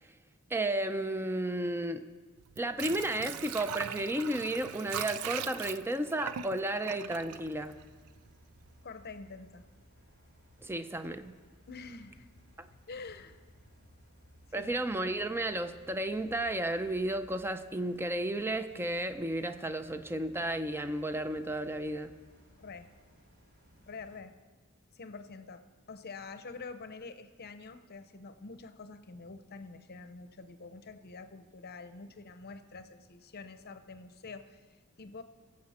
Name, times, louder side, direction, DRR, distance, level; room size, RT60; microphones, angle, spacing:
voice 1, 0.5-2.0 2.6-7.8 10.6-11.3 12.6-12.7 14.5-22.1, right 1 dB, 10° right, 9 dB, 0.5 m, -33 dB
Water / Sink (filling or washing), 2.4-8.3 8.6-8.7, right 10 dB, 80° right, 0.4 m, -40 dB
sound 1, 7.0-24.2, equal, 50° right, 3.1 m, -60 dB
voice 2, 8.8-9.6 11.7-12.3 12.6-13.4 14.5-14.7 22.6-22.9 23.8-24.3 24.9-35.2, left 4 dB, 45° left, 10 dB, 0.7 m, -47 dB
22.0 x 7.6 x 4.3 m, 1.4 s
head